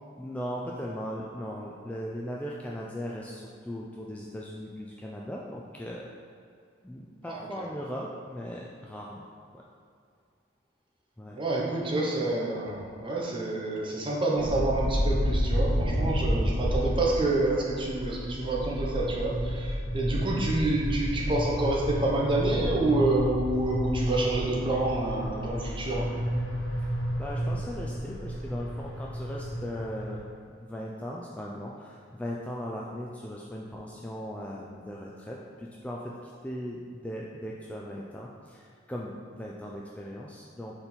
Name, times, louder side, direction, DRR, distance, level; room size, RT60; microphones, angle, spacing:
voice 1, 0.2-6.1 6.8-9.3 9.5-9.6 11.2-11.4 16.3-16.6 20.0-20.4 27.2-30.2 30.6-40.8, equal, 5° left, -3 dB, 0.3 m, -38 dB
voice 2, 11.4-26.1, right 2 dB, 25° right, -3 dB, 0.9 m, -28 dB
sound 1, 14.4-30.2, equal, 75° left, 1.0 m, -30 dB
5.2 x 4.3 x 4.3 m, 2.3 s
head